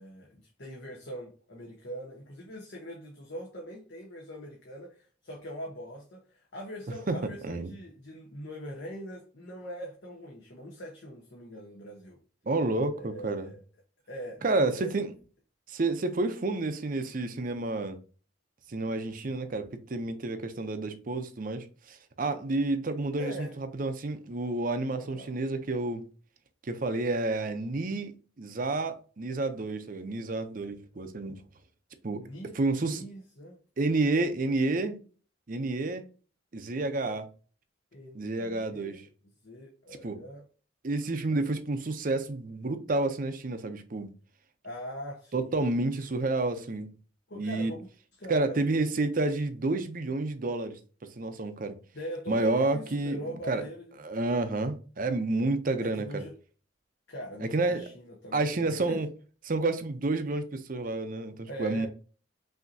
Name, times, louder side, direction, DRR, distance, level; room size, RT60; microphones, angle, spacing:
voice 1, 0.0-12.2 13.0-13.6 14.1-14.9 23.2-23.5 24.9-25.3 32.1-33.6 34.0-34.6 37.0-37.2 37.9-39.1 39.4-40.4 41.3-41.5 44.6-45.6 47.3-47.9 48.2-48.9 51.9-54.0 55.8-56.3 57.1-59.0 61.5-61.9, equal, 70° left, 1.0 m, -42 dB
voice 2, 12.5-13.5 14.4-15.1 15.7-18.0 18.7-26.0 26.6-28.1 28.4-31.4 32.0-32.2 32.5-33.1 33.8-35.0 35.5-36.0 36.5-37.2 38.1-39.0 40.0-40.2 40.8-44.1 45.3-46.9 47.4-47.7 48.3-50.8 51.2-51.8 52.3-53.2 53.5-53.6 54.0-56.2 57.4-57.9 58.3-59.1 59.4-61.9, right 2 dB, 45° right, 0.6 m, -30 dB
5.7 x 2.8 x 2.7 m
head